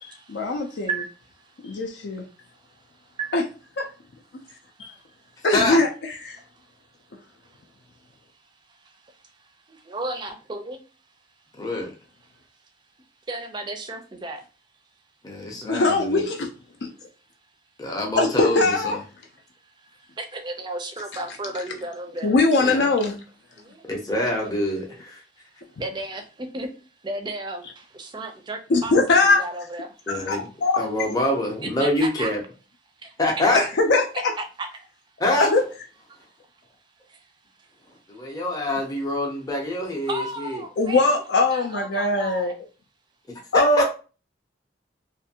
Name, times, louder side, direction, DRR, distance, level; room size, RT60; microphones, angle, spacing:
voice 1, 0.0-0.9 1.6-2.2 3.3-3.4 3.8-3.9 5.4-6.4 15.7-16.5 16.8-16.9 18.2-19.0 22.2-23.2 28.7-29.4 30.1-30.9 33.5-34.3 35.4-35.6 40.8-42.5 43.5-43.8, left 3 dB, 70° left, 3 dB, 0.4 m, -21 dB
voice 2, 9.9-10.8 13.3-14.4 20.2-22.3 23.7-23.8 24.4-24.6 24.9-25.0 25.8-26.2 26.5-26.7 27.0-27.6 27.9-29.9 31.6-32.3 34.1-34.7 40.1-41.0 41.5-42.5, right 2 dB, 25° right, 6 dB, 0.4 m, -33 dB
voice 3, 11.6-11.9 15.2-16.2 17.8-19.0 22.6-22.9 23.9-24.8 30.1-30.5 30.8-32.4 33.2-33.7 35.2-35.5 38.1-40.6 43.5-43.8, left 1 dB, 20° left, -1 dB, 0.6 m, -25 dB
2.5 x 2.5 x 2.7 m, 0.34 s
head